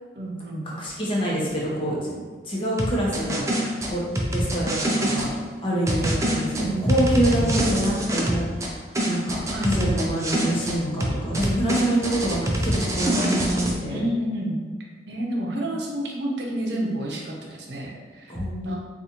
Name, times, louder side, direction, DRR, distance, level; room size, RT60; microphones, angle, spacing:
voice 1, 0.1-0.8 6.5-7.5 9.5-9.9 13.9-14.6 15.1-18.8, right 1 dB, 75° right, -1 dB, 0.6 m, -30 dB
voice 2, 0.8-2.1 2.4-4.0 4.3-5.3 5.6-8.8 9.1-14.0 18.3-18.8, right 1 dB, 30° left, -4 dB, 0.8 m, -26 dB
sound 1, 2.8-5.3 5.9-8.7 9.0-10.8 11.0-13.7, right 1 dB, 20° right, 0.4 m, -25 dB
4.0 x 2.4 x 2.8 m, 1.5 s
head